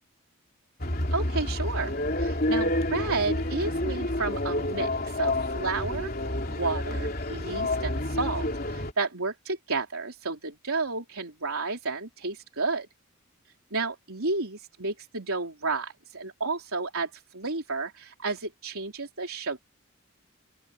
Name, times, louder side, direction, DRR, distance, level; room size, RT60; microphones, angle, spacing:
sound 1, 0.8-8.9, left 1 dB, 45° left, 3.4 m, -29 dB
voice 1, 1.1-6.1 6.5-12.9 13.7-19.6, right 3 dB, 85° right, 3.6 m, -32 dB
open air
head